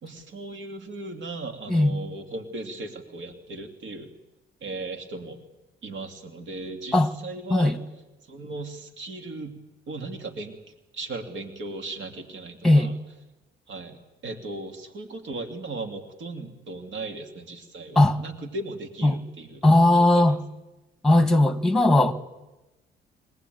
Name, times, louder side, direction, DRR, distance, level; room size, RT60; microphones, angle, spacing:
voice 1, 0.0-4.1 4.6-5.4 5.8-7.8 8.3-9.6 9.9-10.6 10.9-13.0 13.7-19.6 19.9-20.3, right 2 dB, 70° right, 2.7 m, -37 dB
voice 2, 1.7-2.0 6.9-7.1 7.5-7.8 12.6-12.9 17.9-18.2 19.0-19.2 19.6-20.4 21.0-22.1, left 1 dB, ahead, 1.6 m, -18 dB
23.5 x 18.5 x 9.3 m
cardioid pair, 90°, 20 cm